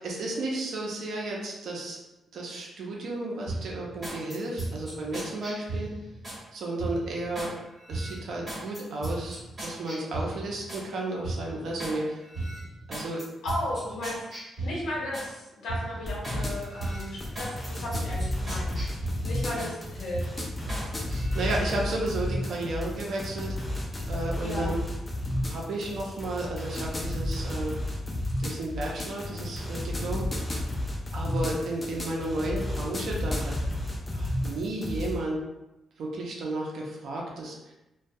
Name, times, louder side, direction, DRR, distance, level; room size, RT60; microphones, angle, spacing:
voice 1, 0.0-2.0 2.3-5.9 6.5-7.5 7.9-12.2 12.9-13.2 19.6-19.7 21.1-23.6 24.1-24.8 25.4-27.7 28.4-30.3 31.1-33.5 34.1-35.4 36.0-37.6, right 2 dB, 60° right, -2 dB, 0.5 m, -33 dB
sound 1, 3.5-6.4 6.8-7.5 7.9-10.9 11.2-12.0 12.3-15.3 15.7-16.4 16.8-19.8 20.1-20.9 21.2-21.5, right 2 dB, 20° right, 1.1 m, -36 dB
voice 2, 13.4-18.7 19.2-20.5 24.4-24.7, left 1 dB, 80° left, -5 dB, 0.8 m, -35 dB
sound 2, 16.0-35.2, left 1 dB, 15° left, 0.3 m, -32 dB
2.2 x 2.1 x 2.6 m, 0.97 s
wide cardioid pair, 175°, 0 cm